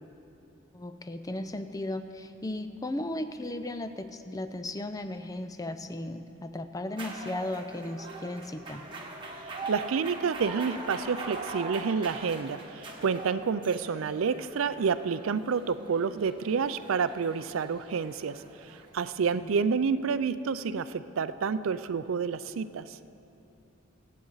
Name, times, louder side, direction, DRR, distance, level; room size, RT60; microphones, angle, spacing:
voice 1, 0.7-8.8 19.3-19.5, left 1 dB, 15° left, 9 dB, 0.4 m, -36 dB
sound 1, 6.9-18.9, right 2 dB, 25° right, 1.4 m, -42 dB
voice 2, 9.7-18.4 18.7-23.0, right 5 dB, 80° right, 13 dB, 0.4 m, -29 dB
23.0 x 8.4 x 4.0 m, 2.8 s
head